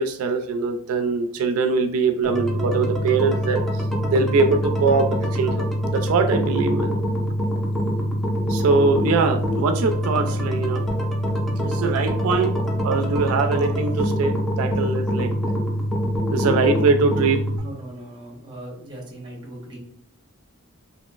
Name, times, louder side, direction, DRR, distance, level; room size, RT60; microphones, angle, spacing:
voice 1, 0.0-3.6 4.1-5.6 5.9-7.0 8.5-10.9 11.6-15.3 16.3-17.4, right 4 dB, 80° right, 6 dB, 0.3 m, -22 dB
sound 1, 2.2-17.6, equal, ahead, 0.4 m, -24 dB
voice 2, 16.3-16.8 17.6-19.8, right 1 dB, 20° right, -1 dB, 0.8 m, -38 dB
3.0 x 2.5 x 2.3 m, 0.69 s
head